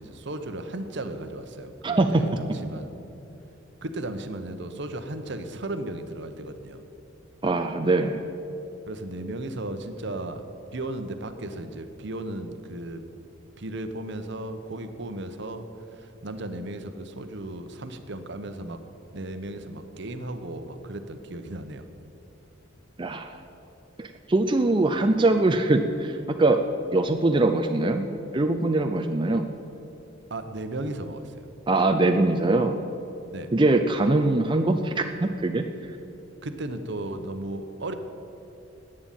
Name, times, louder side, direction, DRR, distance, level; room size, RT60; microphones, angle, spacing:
voice 1, 0.0-2.9 3.8-6.8 8.9-10.4 10.7-13.0 13.6-18.8 19.1-21.9 30.3-31.5 33.3-33.5 36.4-37.9, right 1 dB, 60° right, 8 dB, 1.0 m, -35 dB
voice 2, 1.8-2.2 7.4-8.2 23.0-23.4 24.0-26.6 26.9-28.1 28.3-29.5 31.7-32.8 33.5-35.6, right 2 dB, 25° right, 5 dB, 0.5 m, -22 dB
11.5 x 8.9 x 9.1 m, 2.9 s
head